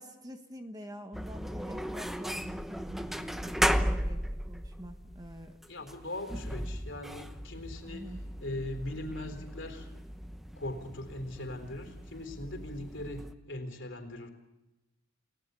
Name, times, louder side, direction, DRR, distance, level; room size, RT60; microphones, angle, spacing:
voice 1, 0.0-5.6 6.3-6.4 7.9-8.2, right 1 dB, 15° right, 6 dB, 1.3 m, -45 dB
sound 1, 1.1-13.3, equal, ahead, 0.8 m, -36 dB
voice 2, 5.7-8.1 8.4-9.9 10.6-14.3, left 1 dB, 55° left, 6 dB, 4.0 m, -40 dB
29.5 x 19.0 x 8.3 m, 1.0 s
head